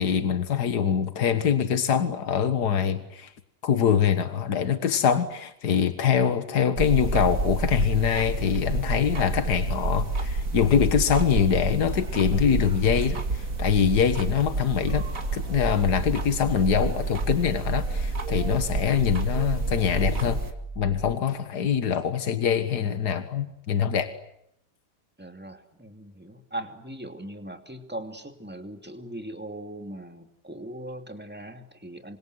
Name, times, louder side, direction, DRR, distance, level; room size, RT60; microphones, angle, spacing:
voice 1, 0.0-3.3 3.6-15.1 15.3-20.4 20.8-24.1, left 8 dB, 80° left, 10 dB, 2.1 m, -24 dB
sound 1, 6.8-20.5, right 3 dB, 55° right, 2.7 m, -29 dB
sound 2, 15.2-21.2, right 3 dB, 25° left, 4.4 m, -38 dB
voice 2, 25.2-32.2, right 1 dB, 5° right, 6 dB, 2.6 m, -39 dB
28.5 x 25.0 x 8.0 m, 0.78 s
omnidirectional pair, 1.7 m